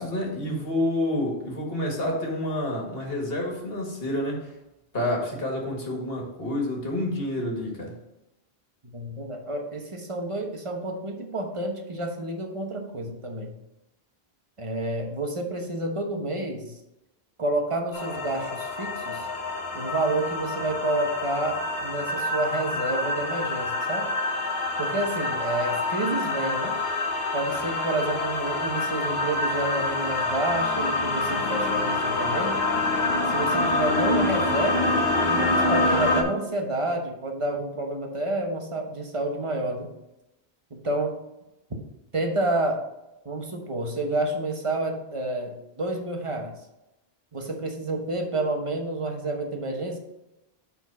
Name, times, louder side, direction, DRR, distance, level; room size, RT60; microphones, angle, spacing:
voice 1, 0.0-4.5 4.9-7.9, left 1 dB, 65° left, 0 dB, 1.9 m, -28 dB
voice 2, 8.8-13.5 14.6-16.8 17.4-19.3 19.7-24.1 24.8-26.8 27.3-32.6 33.3-39.9 40.7-41.2 42.1-42.8 43.2-46.5 47.3-50.0, right 2 dB, 30° right, 3 dB, 1.1 m, -29 dB
sound 1, 17.9-36.2, left 2 dB, 45° left, 1.2 m, -26 dB
7.0 x 4.2 x 5.4 m, 0.93 s
omnidirectional pair, 1.1 m